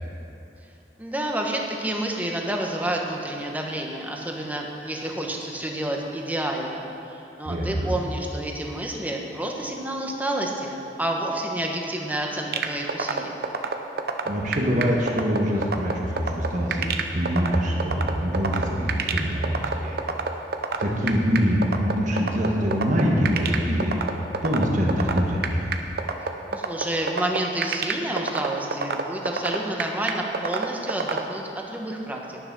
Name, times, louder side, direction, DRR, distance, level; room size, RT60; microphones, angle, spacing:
voice 1, 1.0-13.3 26.5-31.4 31.7-32.4, right 1 dB, 10° right, 0 dB, 1.2 m, -29 dB
voice 2, 7.4-7.9 14.2-16.9 17.1-20.0 20.8-23.9 24.4-25.6, equal, 45° right, -2 dB, 1.5 m, -24 dB
sound 1, 12.5-31.2, right 5 dB, 60° right, 0.8 m, -26 dB
10.5 x 10.0 x 6.1 m, 2.8 s
head